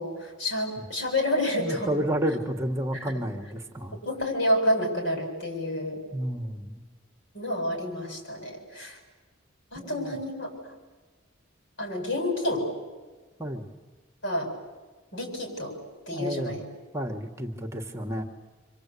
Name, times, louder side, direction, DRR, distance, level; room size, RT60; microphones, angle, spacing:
voice 1, 0.0-2.0 3.0-3.1 4.0-6.0 7.3-9.0 9.7-10.5 11.8-12.7 14.2-14.5 15.1-15.7 16.1-16.6, left 1 dB, 70° left, 3 dB, 7.7 m, -29 dB
voice 2, 1.6-4.0 6.1-6.8 9.7-10.2 13.4-13.7 16.1-16.5 16.9-18.3, right 1 dB, 15° right, 4 dB, 1.6 m, -31 dB
27.5 x 25.5 x 8.4 m, 1.3 s
head